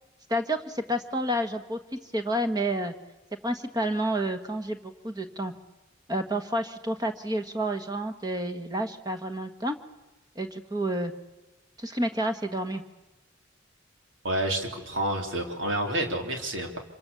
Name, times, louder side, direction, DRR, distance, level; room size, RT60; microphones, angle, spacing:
voice 1, 0.3-2.9 3.4-5.5 6.1-9.7 10.3-11.1 11.8-12.8, right 1 dB, 20° right, 6 dB, 1.5 m, -29 dB
voice 2, 14.2-16.8, right 1 dB, 85° right, 3 dB, 3.5 m, -29 dB
26.0 x 25.0 x 7.0 m, 1.1 s
head